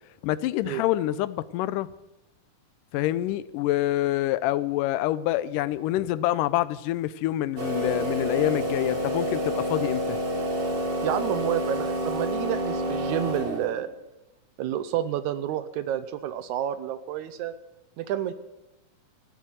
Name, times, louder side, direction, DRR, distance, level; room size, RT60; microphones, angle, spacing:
voice 1, 0.2-1.9 2.9-10.2, left 14 dB, 85° left, 2.2 m, -26 dB
sound 1, 7.6-13.9, equal, 30° right, 1.0 m, -28 dB
voice 2, 11.0-13.9 14.6-17.5 18.0-18.3, right 11 dB, 75° right, 2.0 m, -29 dB
14.5 x 8.2 x 9.2 m
omnidirectional pair, 3.7 m